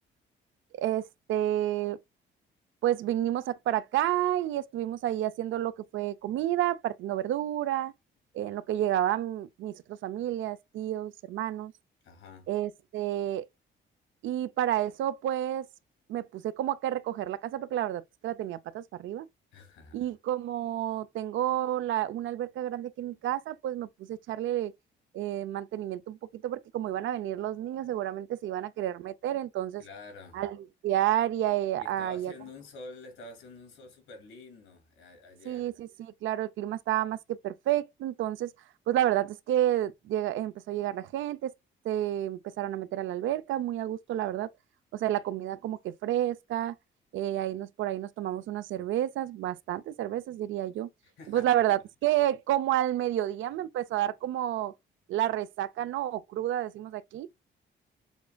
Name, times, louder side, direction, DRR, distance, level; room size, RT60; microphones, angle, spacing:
voice 1, 0.7-2.0 2.8-7.9 8.3-11.7 12.5-13.4 14.2-15.7 16.1-19.3 19.9-24.7 25.1-29.8 30.3-30.6 30.8-32.3 35.4-38.5 38.9-41.5 41.8-44.5 44.9-46.8 47.1-50.9 51.3-54.7 55.1-57.3, right 12 dB, 75° right, 0.5 m, -30 dB
voice 2, 12.0-12.5 19.5-20.1 23.1-23.2 29.8-30.4 31.8-35.6 51.0-51.6, left 3 dB, 80° left, 2.7 m, -48 dB
7.1 x 2.5 x 2.2 m
cardioid pair, 90°, 20 cm